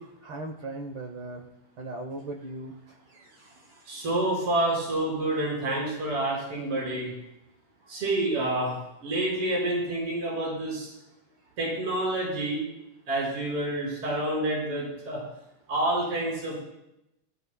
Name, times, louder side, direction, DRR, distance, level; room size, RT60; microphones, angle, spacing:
voice 1, 0.2-1.5 1.8-2.8 3.1-3.9, right 2 dB, 80° right, 2 dB, 1.0 m, -39 dB
voice 2, 3.9-7.1 7.9-10.9 11.6-12.6 13.1-15.2 15.7-16.5, right 1 dB, 45° right, -4 dB, 5.9 m, -28 dB
19.5 x 16.0 x 2.2 m, 0.86 s
omnidirectional pair, 3.6 m